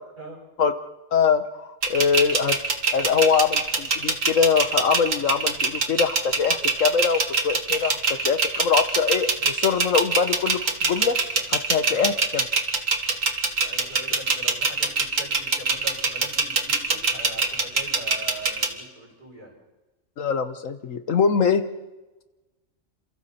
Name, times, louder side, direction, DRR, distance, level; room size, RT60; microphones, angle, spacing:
voice 1, 1.1-2.6 2.9-8.0 8.2-11.1 11.5-12.1 20.2-21.6, left 6 dB, 70° left, 9 dB, 1.4 m, -23 dB
sound 1, 1.8-18.7, right 4 dB, 70° right, 2.1 m, -23 dB
voice 2, 11.7-12.1 13.6-19.5, right 1 dB, 35° right, -2 dB, 6.9 m, -41 dB
29.0 x 27.5 x 4.3 m, 1.1 s
omnidirectional pair, 1.4 m